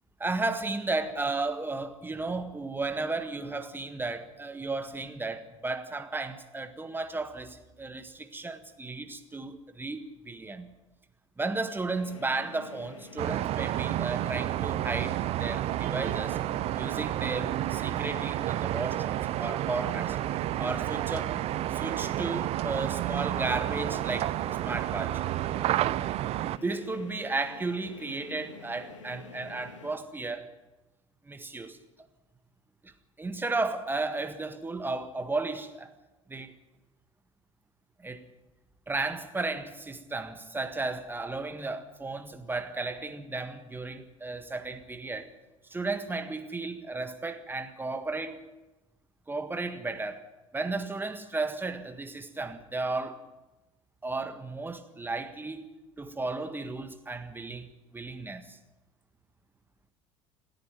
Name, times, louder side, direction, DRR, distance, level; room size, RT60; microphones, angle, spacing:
voice 1, 0.2-10.7 11.4-16.4 16.8-20.2 20.6-21.3 21.7-24.3 24.6-25.2 26.6-30.5 31.3-31.8 32.8-32.9 33.2-35.9 36.3-36.5 38.0-38.3 38.9-45.3 45.7-48.4 49.3-50.2 50.5-53.2 54.0-55.7 56.0-58.6, right 3 dB, 15° right, 1.7 m, -34 dB
sound 1, 11.9-29.9, left 4 dB, 75° left, 2.3 m, -48 dB
sound 2, 13.2-26.6, right 14 dB, 40° right, 0.6 m, -30 dB
29.0 x 9.8 x 9.2 m
figure-of-eight pair, 65°, 16 cm